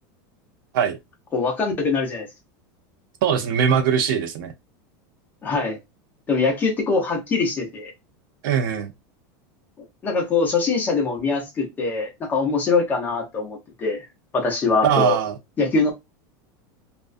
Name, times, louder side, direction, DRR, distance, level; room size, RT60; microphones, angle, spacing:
voice 1, 1.3-2.3 5.4-5.8 6.3-7.9 10.0-14.1 14.3-15.2 15.6-15.9, left 4 dB, 15° left, 0.6 m, -23 dB
voice 2, 3.2-4.5 8.4-8.9 14.8-15.3, right 8 dB, 70° right, 0.5 m, -21 dB
2.4 x 2.2 x 2.5 m
supercardioid pair, 170°, 11 cm